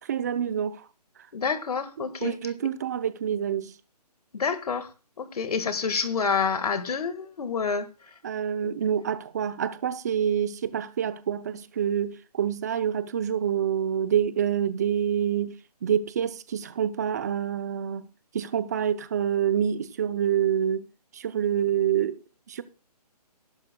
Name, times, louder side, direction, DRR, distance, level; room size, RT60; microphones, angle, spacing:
voice 1, 0.1-0.8 2.0-3.7 8.2-15.5 15.8-18.1 18.3-20.9 21.1-22.2 22.5-22.6, right 9 dB, 25° right, 0.5 m, -27 dB
voice 2, 1.3-2.5 4.3-4.9 5.2-7.9 8.6-8.7, left 5 dB, 65° left, 1.6 m, -28 dB
17.0 x 11.5 x 2.2 m
hypercardioid pair, 160°, 21 cm